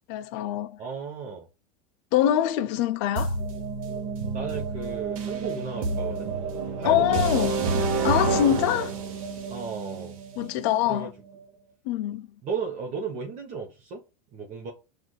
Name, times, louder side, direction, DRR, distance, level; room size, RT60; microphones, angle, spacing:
voice 1, 0.1-0.8 2.1-3.4 6.8-7.7 8.0-9.0 10.4-11.1 11.9-12.3, left 12 dB, 55° left, 0.4 m, -24 dB
voice 2, 0.8-1.5 4.3-6.3 6.8-7.4 9.5-10.2 10.8-11.1 12.4-14.0 14.3-14.7, right 5 dB, 40° right, 0.8 m, -35 dB
sound 1, 3.2-11.0, right 4 dB, 80° right, 0.9 m, -29 dB
6.2 x 2.4 x 2.2 m
supercardioid pair, 115°, 18 cm